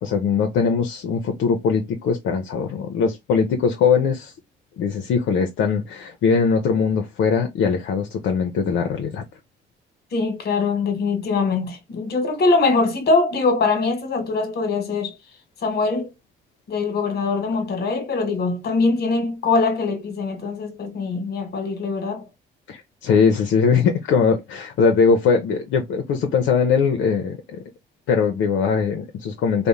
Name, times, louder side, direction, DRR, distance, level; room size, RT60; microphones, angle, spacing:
voice 1, 0.0-4.3 4.8-9.2 22.7-27.6 28.1-29.7, left 5 dB, 75° left, 0.5 m, -21 dB
voice 2, 10.1-15.1 15.6-16.1 16.7-22.3, left 3 dB, 55° left, 1.1 m, -22 dB
2.5 x 2.0 x 2.9 m
cardioid pair, 90°, 20 cm